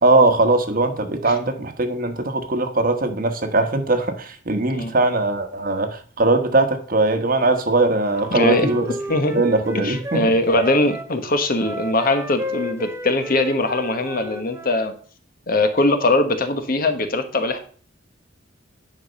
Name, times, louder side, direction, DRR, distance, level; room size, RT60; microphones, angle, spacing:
voice 1, 0.0-8.9 9.3-10.3, right 2 dB, 45° right, 7 dB, 1.2 m, -20 dB
Wind instrument woodwind instrument, 8.0-11.1 11.6-14.8, equal, 15° right, 0.9 m, -33 dB
voice 2, 8.3-8.7 9.1-9.4 9.7-14.9 15.5-17.6, left 2 dB, 45° left, 8 dB, 1.2 m, -21 dB
9.9 x 5.1 x 5.3 m, 0.44 s
head